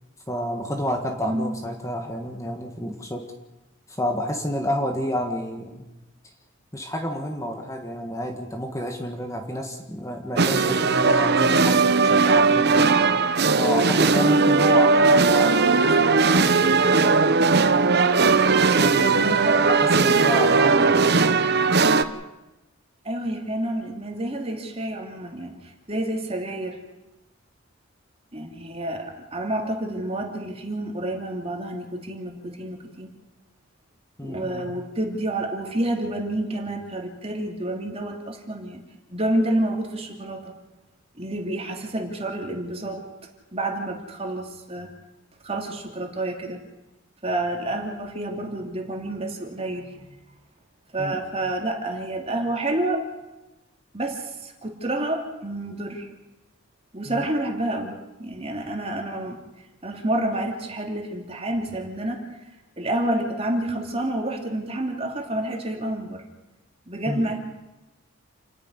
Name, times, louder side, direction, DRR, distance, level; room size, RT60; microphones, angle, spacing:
voice 1, 0.3-3.3 3.9-5.9 6.7-12.9 13.6-17.3 18.4-21.5 34.2-34.7 51.0-51.2 57.0-57.2 67.1-67.4, equal, 15° left, 3 dB, 1.7 m, -30 dB
sound 1, 10.4-22.0, right 4 dB, 50° right, 0.9 m, -18 dB
voice 2, 14.1-14.8 19.1-19.7 23.0-26.8 28.3-33.1 34.2-38.8 39.1-40.5 41.2-43.0 43.5-44.9 45.4-46.6 47.2-50.2 50.9-53.1 53.9-56.1 56.9-59.4 59.8-62.4 62.8-66.2 66.9-67.4, right 1 dB, 30° right, 2 dB, 2.9 m, -29 dB
29.0 x 11.0 x 9.7 m, 1.0 s
head